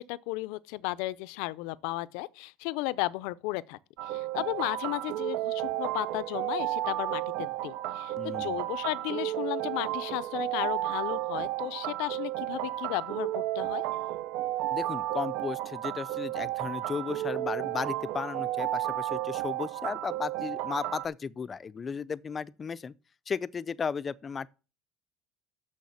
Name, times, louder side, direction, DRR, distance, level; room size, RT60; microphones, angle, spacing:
voice 1, 0.0-13.8, left 19 dB, 85° left, 0.4 m, -34 dB
sound 1, 4.0-21.1, right 14 dB, 70° right, 0.4 m, -33 dB
voice 2, 8.2-8.6 14.7-22.9 23.3-24.5, left 6 dB, 20° left, 0.4 m, -35 dB
6.5 x 6.4 x 6.9 m
cardioid pair, 155°, 0 cm